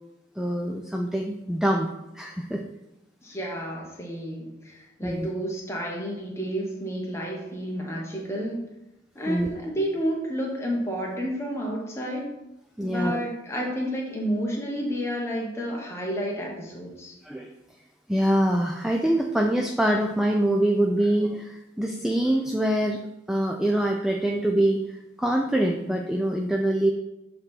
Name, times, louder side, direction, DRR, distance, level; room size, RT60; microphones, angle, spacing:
voice 1, 0.4-1.9 2.1-2.6 5.0-5.3 9.3-9.5 12.8-13.2 17.2-17.5 18.1-23.0 23.3-26.9, right 1 dB, 5° right, 2 dB, 0.3 m, -24 dB
voice 2, 3.2-8.6 9.1-12.3 12.8-17.1, equal, 15° left, -2 dB, 1.1 m, -30 dB
7.4 x 3.3 x 4.4 m, 0.93 s
head